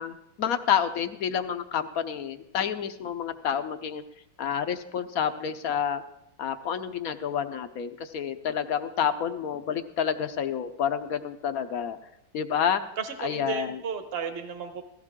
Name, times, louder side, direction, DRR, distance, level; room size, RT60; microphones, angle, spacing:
voice 1, 0.0-4.0 4.4-6.0 6.4-12.0 12.3-12.8 13.2-13.8, left 8 dB, 60° left, 9 dB, 1.0 m, -29 dB
voice 2, 13.0-14.8, right 6 dB, 35° right, 7 dB, 1.2 m, -33 dB
17.0 x 14.5 x 3.7 m, 0.82 s
omnidirectional pair, 2.1 m